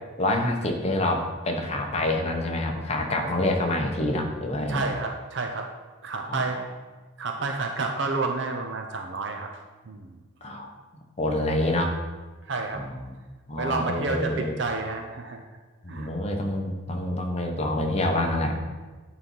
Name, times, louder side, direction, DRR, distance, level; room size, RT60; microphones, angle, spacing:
voice 1, 0.2-4.8 6.3-6.7 10.4-10.7 11.2-12.0 12.7-13.1 13.5-14.6 15.8-18.6, left 1 dB, 30° left, 2 dB, 0.9 m, -27 dB
voice 2, 4.7-5.7 6.0-6.6 7.2-9.5 9.9-10.2 12.5-12.8 13.6-15.4 15.9-16.1, right 3 dB, 55° right, 3 dB, 0.6 m, -30 dB
8.9 x 4.0 x 5.5 m, 1.3 s
head